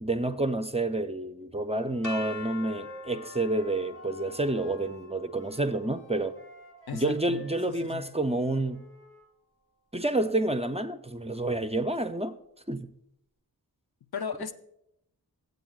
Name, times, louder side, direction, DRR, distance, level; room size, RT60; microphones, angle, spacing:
voice 1, 0.0-6.4 6.9-8.9 9.9-12.3 12.7-12.9, right 2 dB, 15° right, 0.5 m, -29 dB
Wind instrument woodwind instrument, 1.7-9.3, left 1 dB, 35° left, 3.2 m, -51 dB
sound 1, 2.0-8.0, left 5 dB, 50° left, 1.3 m, -46 dB
voice 2, 6.9-7.4 7.7-8.1 14.1-14.5, left 7 dB, 70° left, 0.7 m, -36 dB
16.0 x 8.1 x 2.3 m
wide cardioid pair, 90°, 39 cm